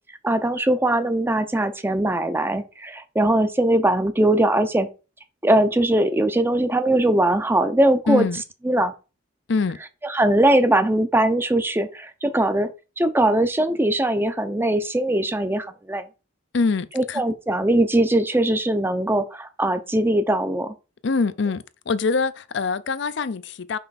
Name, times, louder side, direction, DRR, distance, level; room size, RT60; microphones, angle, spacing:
voice 1, 0.2-4.9 5.4-8.3 8.6-8.9 10.0-12.7 13.0-16.1 17.0-20.7, right 1 dB, 10° right, 0.5 m, -21 dB
voice 2, 8.1-8.4 9.5-9.8 16.5-17.2 21.0-23.8, left 4 dB, 60° left, 0.5 m, -24 dB
5.5 x 5.5 x 4.1 m
head